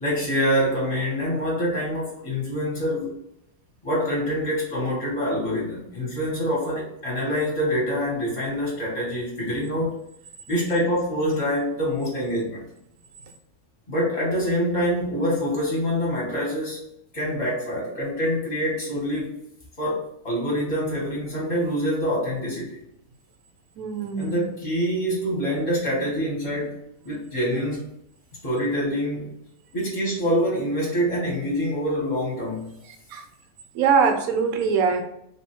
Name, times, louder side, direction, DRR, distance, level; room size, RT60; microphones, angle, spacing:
voice 1, 0.0-3.1 3.8-9.9 10.5-12.6 13.9-16.8 17.1-19.3 19.8-22.8 24.2-27.9 28.4-29.3 29.7-32.7, equal, 25° left, -5 dB, 1.1 m, -25 dB
voice 2, 23.8-24.5 32.9-33.3 33.7-35.0, right 5 dB, 70° right, 6 dB, 1.0 m, -23 dB
3.4 x 2.6 x 2.9 m, 0.77 s
omnidirectional pair, 1.6 m